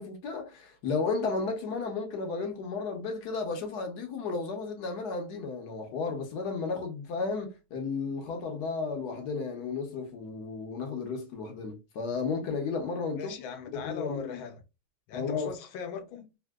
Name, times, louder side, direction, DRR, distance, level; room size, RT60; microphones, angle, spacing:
voice 1, 0.0-13.3 13.7-14.3 15.1-15.5, left 4 dB, 65° left, 1.1 m, -33 dB
voice 2, 13.2-14.6 15.1-16.3, left 6 dB, 80° left, 1.4 m, -39 dB
3.5 x 2.6 x 2.2 m
omnidirectional pair, 2.2 m